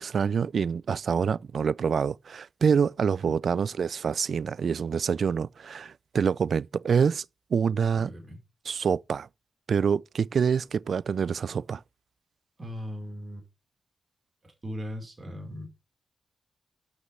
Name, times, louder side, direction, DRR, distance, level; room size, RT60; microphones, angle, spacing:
voice 1, 0.0-7.2 7.5-8.1 8.7-9.3 9.7-11.8, right 6 dB, 65° right, 0.4 m, -26 dB
voice 2, 7.9-8.4 12.6-13.4 14.6-15.7, equal, 40° right, 4.9 m, -38 dB
7.9 x 6.4 x 4.4 m
supercardioid pair, 45°, 0 cm